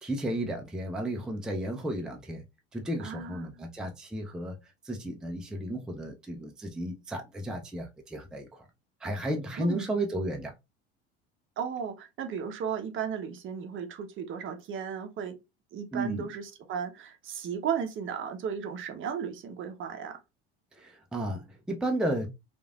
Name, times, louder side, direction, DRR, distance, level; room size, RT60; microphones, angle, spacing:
voice 1, 0.0-2.4 2.7-4.6 4.8-8.5 9.0-10.5 15.9-16.3 20.8-22.3, right 1 dB, ahead, 0.5 m, -33 dB
voice 2, 3.0-3.7 9.6-10.0 11.6-15.4 15.7-20.2, right 7 dB, 40° right, 0.7 m, -35 dB
3.1 x 2.4 x 2.3 m
hypercardioid pair, 80°, 31 cm